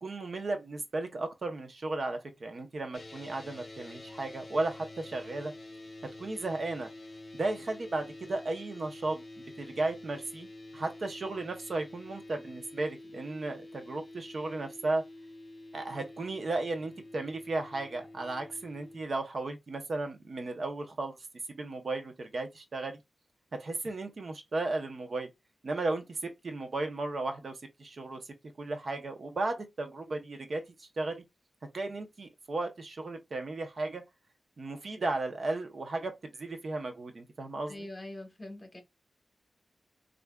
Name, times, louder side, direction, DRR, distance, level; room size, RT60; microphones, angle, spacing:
voice 1, 0.0-5.5 6.2-6.9 7.3-9.2 9.6-15.0 15.7-21.2 21.5-23.0 23.6-25.3 25.6-28.2 28.6-31.2 31.7-34.0 34.6-37.7, right 2 dB, 55° right, 0.6 m, -35 dB
sound 1, 2.9-19.0, left 1 dB, 45° left, 0.7 m, -48 dB
voice 2, 37.7-38.8, left 1 dB, 25° left, 1.0 m, -43 dB
4.5 x 2.5 x 2.2 m
wide cardioid pair, 125°, 0 cm